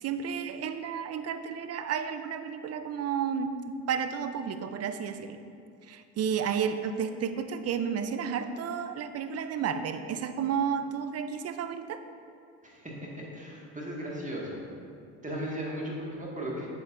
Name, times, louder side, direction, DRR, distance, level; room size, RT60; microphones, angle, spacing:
voice 1, 0.0-5.4 5.9-12.0, right 7 dB, 40° right, 9 dB, 0.5 m, -32 dB
voice 2, 12.6-14.6 15.2-16.7, equal, 20° right, -3 dB, 1.7 m, -36 dB
7.6 x 7.4 x 2.5 m, 2.4 s
hypercardioid pair, 65°, 41 cm